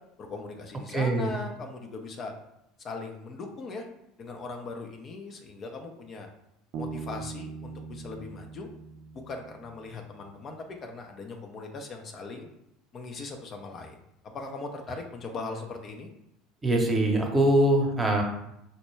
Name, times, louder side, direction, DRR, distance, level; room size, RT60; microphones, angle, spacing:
voice 1, 0.2-2.3 2.8-3.8 4.2-6.3 6.8-8.7 9.1-12.5 12.9-14.0 14.2-16.1, left 3 dB, 40° left, 3 dB, 0.5 m, -39 dB
voice 2, 0.9-1.3 16.6-18.2, right 1 dB, 20° right, 1 dB, 0.8 m, -23 dB
Bass guitar, 6.7-10.3, right 5 dB, 55° right, 0.4 m, -41 dB
4.2 x 2.1 x 3.1 m, 0.82 s
hypercardioid pair, 75°, 0 cm